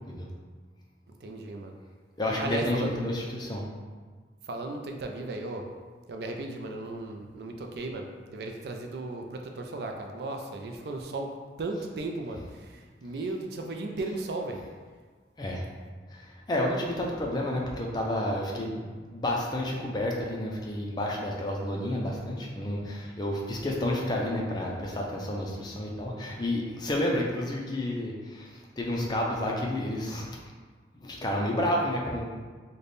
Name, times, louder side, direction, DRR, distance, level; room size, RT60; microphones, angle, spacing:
voice 1, 1.2-1.7 2.3-3.0 4.5-5.6 6.1-11.3 11.6-12.4 13.0-14.6, right 2 dB, 60° right, 3 dB, 0.4 m, -35 dB
voice 2, 2.2-3.6 15.4-15.6 16.1-30.3 30.9-32.2, left 1 dB, 25° left, -1 dB, 0.4 m, -30 dB
3.3 x 2.2 x 3.9 m, 1.5 s
head